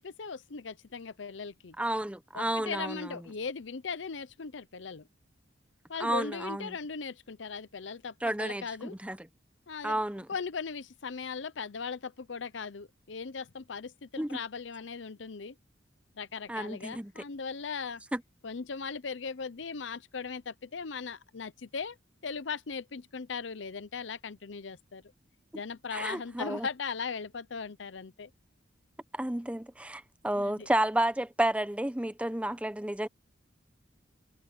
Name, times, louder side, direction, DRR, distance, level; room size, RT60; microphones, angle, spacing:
voice 1, 0.0-1.8 2.3-5.1 5.9-8.9 9.7-10.0 10.3-15.5 16.2-18.0 18.4-22.0 22.2-25.0 25.5-28.3 30.3-30.7, left 5 dB, 70° left, 0.7 m, -38 dB
voice 2, 1.8-3.2 6.0-6.8 8.2-9.2 9.8-10.3 14.2-14.4 16.5-17.1 18.1-18.2 25.9-26.7 29.1-33.1, right 1 dB, 5° right, 0.9 m, -31 dB
head